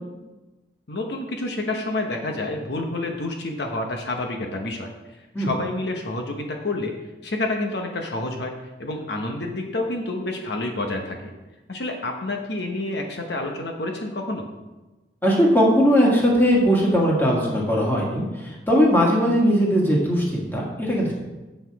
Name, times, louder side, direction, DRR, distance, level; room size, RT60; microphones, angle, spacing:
voice 1, 0.9-4.9 5.2-6.9 7.2-8.5 8.8-11.3 11.7-14.4, left 2 dB, 65° left, 2 dB, 0.9 m, -28 dB
voice 2, 15.2-21.1, equal, 10° left, -3 dB, 1.7 m, -19 dB
7.9 x 6.6 x 4.7 m, 1.1 s
head